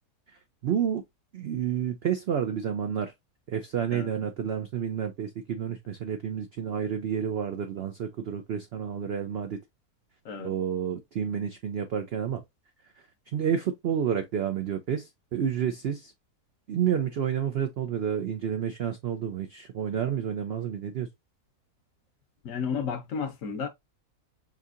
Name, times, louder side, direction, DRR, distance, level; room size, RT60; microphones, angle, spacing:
voice 1, 0.6-1.0 1.3-3.1 3.5-9.6 10.4-12.4 13.3-16.1 16.7-21.1, right 8 dB, 80° right, 0.5 m, -30 dB
voice 2, 22.4-23.7, left 6 dB, 65° left, 1.0 m, -32 dB
5.0 x 2.7 x 2.5 m
omnidirectional pair, 1.7 m